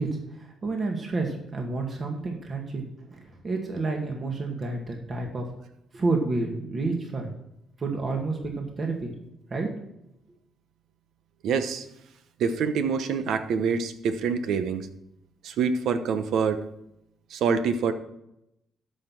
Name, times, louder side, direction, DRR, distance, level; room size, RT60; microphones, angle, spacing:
voice 1, 0.0-5.5 5.9-7.3 7.8-9.1 9.5-9.7, right 3 dB, 40° right, 2 dB, 2.1 m, -30 dB
voice 2, 11.4-11.9 12.4-14.9 15.4-16.6 17.3-17.9, right 6 dB, 75° right, 10 dB, 1.0 m, -26 dB
12.5 x 5.8 x 6.1 m, 0.83 s
cardioid pair, 90°, 0 cm